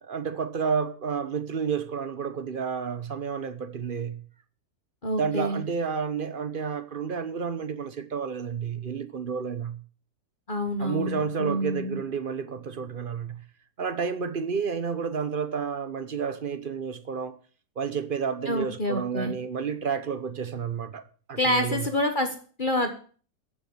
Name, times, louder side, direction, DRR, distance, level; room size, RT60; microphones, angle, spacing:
voice 1, 0.0-4.2 5.2-9.8 10.8-13.4 13.8-17.4 17.8-21.9, right 6 dB, 40° right, 0.9 m, -30 dB
voice 2, 5.0-5.6 10.5-12.0 18.5-19.3 21.4-22.9, left 1 dB, 30° left, 1.6 m, -27 dB
14.0 x 7.3 x 7.3 m
omnidirectional pair, 1.7 m